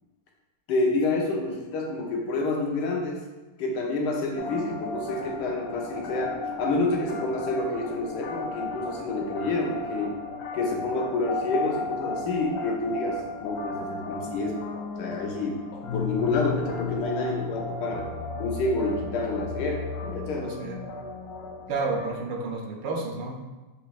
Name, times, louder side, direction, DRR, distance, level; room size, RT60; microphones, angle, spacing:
voice 1, 0.7-3.2 3.6-10.1 10.5-18.1 18.4-20.5, left 2 dB, 70° left, 0 dB, 1.3 m, -28 dB
sound 1, 4.4-22.2, left 3 dB, 90° left, 0.7 m, -34 dB
voice 2, 20.4-20.9 21.7-23.3, right 3 dB, 80° right, 1 dB, 1.3 m, -31 dB
6.5 x 2.9 x 2.4 m, 1.2 s
omnidirectional pair, 2.0 m